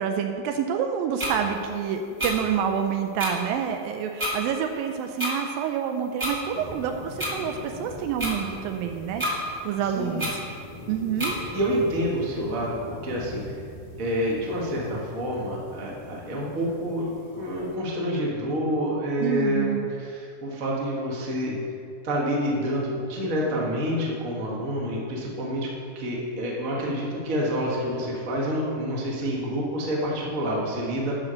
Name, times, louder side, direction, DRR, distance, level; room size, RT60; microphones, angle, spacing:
voice 1, 0.0-10.4 10.9-11.3 19.2-19.8, right 8 dB, 80° right, 5 dB, 2.2 m, -28 dB
sound 1, 1.2-1.3 2.2-2.3 3.2-3.3 4.2-4.3 5.2-5.3 6.2-6.3 7.2-7.3 8.2-8.3 9.2-9.3 10.2-10.3 11.2-11.3, equal, 25° right, 0.6 m, -27 dB
sound 2, 6.5-17.8, left 1 dB, 90° left, 3.7 m, -42 dB
voice 2, 9.9-10.2 11.5-13.6 14.0-17.1 17.4-21.6 22.0-25.7 25.9-31.1, equal, 40° right, -4 dB, 1.1 m, -28 dB
11.5 x 5.1 x 6.3 m, 2.4 s
omnidirectional pair, 4.3 m